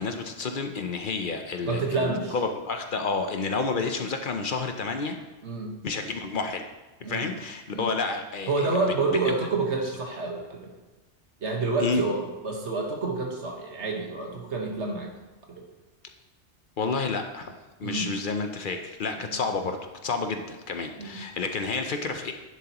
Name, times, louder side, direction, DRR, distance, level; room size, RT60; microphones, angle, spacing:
voice 1, 0.0-5.2 5.8-6.7 7.1-8.7 11.8-12.0 16.8-17.5 17.8-22.3, left 4 dB, 55° left, 6 dB, 0.7 m, -30 dB
voice 2, 1.6-2.4 5.4-5.7 7.0-7.3 7.7-7.9 8.5-10.7 11.4-15.1 15.5-15.6 17.8-18.1 19.2-19.3 21.0-21.2, right 3 dB, 75° right, 1 dB, 1.6 m, -28 dB
10.5 x 7.5 x 2.9 m, 1.1 s
omnidirectional pair, 1.2 m